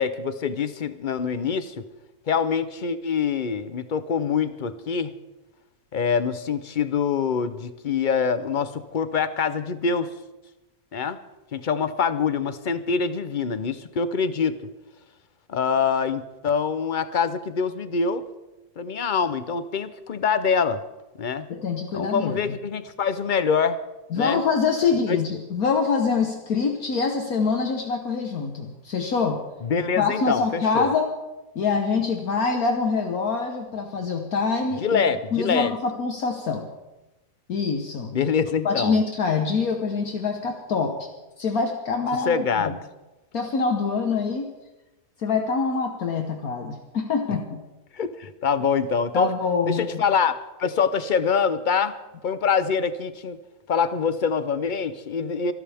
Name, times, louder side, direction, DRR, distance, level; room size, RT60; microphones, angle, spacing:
voice 1, 0.0-1.8 2.3-5.1 5.9-10.1 10.9-11.2 11.5-14.6 15.5-18.2 18.8-20.8 21.2-21.5 21.9-23.8 24.1-24.4 25.1-25.2 29.6-30.9 34.8-35.7 38.1-39.0 42.3-42.8 47.9-49.3 49.7-50.3 50.6-52.0 52.2-53.4 53.7-55.5, left 6 dB, 45° left, 12 dB, 0.6 m, -25 dB
voice 2, 21.5-22.3 24.1-29.4 29.8-31.1 31.5-35.0 35.3-36.7 37.5-38.1 38.6-41.1 41.4-42.4 43.3-44.5 45.2-47.6 49.1-50.0, left 5 dB, 65° left, 3 dB, 1.7 m, -25 dB
25.5 x 12.5 x 3.5 m, 1.0 s
omnidirectional pair, 1.7 m